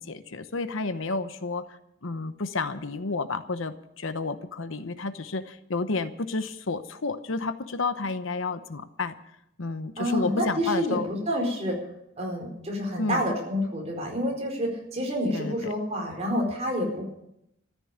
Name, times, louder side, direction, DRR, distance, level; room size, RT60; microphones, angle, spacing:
voice 1, 0.0-9.1 9.6-11.1 13.0-13.2 15.3-15.6, left 3 dB, 70° left, 11 dB, 0.9 m, -31 dB
voice 2, 10.0-11.8 12.2-17.1, equal, 30° right, 0 dB, 4.6 m, -28 dB
14.0 x 10.0 x 8.5 m, 0.80 s
head